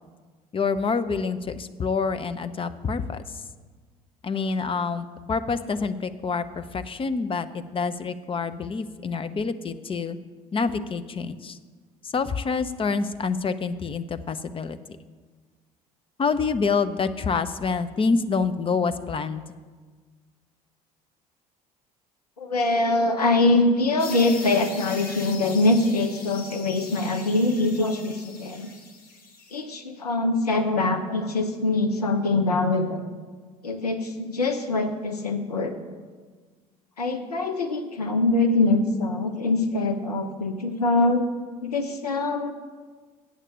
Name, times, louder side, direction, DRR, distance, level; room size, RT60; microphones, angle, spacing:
voice 1, 0.5-3.2 4.2-10.2 10.5-11.6 12.0-14.8 16.2-19.4, left 4 dB, 30° left, 11 dB, 0.7 m, -27 dB
voice 2, 22.4-28.7 29.5-33.0 33.6-35.7 37.0-41.2 41.6-42.5, left 2 dB, 85° left, 6 dB, 0.9 m, -23 dB
sound 1, 24.0-29.6, left 3 dB, 50° left, 2.1 m, -41 dB
8.3 x 7.3 x 8.7 m, 1.4 s
figure-of-eight pair, 60°, 19 cm